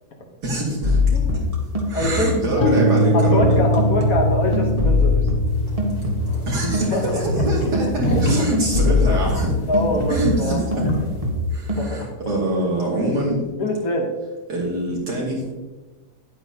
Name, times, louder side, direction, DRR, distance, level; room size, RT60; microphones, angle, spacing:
voice 1, 0.4-1.0 1.3-1.5 1.9-3.6 6.5-9.6 10.1-10.8 11.5-13.4 14.5-15.5, right 1 dB, 80° right, -4 dB, 3.0 m, -24 dB
sound 1, 0.8-6.5 6.7-10.5 10.7-11.8, left 3 dB, 25° right, 1.2 m, -23 dB
voice 2, 1.9-2.7 3.1-5.3 6.9-7.2 9.7-10.9 11.8-12.1 13.6-14.1, left 2 dB, 60° left, 0 dB, 1.5 m, -24 dB
sound 2, 2.6-10.5, equal, 85° left, 1.4 m, -24 dB
sound 3, 5.5-11.3, equal, 45° left, 2.7 m, -28 dB
10.0 x 8.6 x 2.8 m, 1.2 s
omnidirectional pair, 1.7 m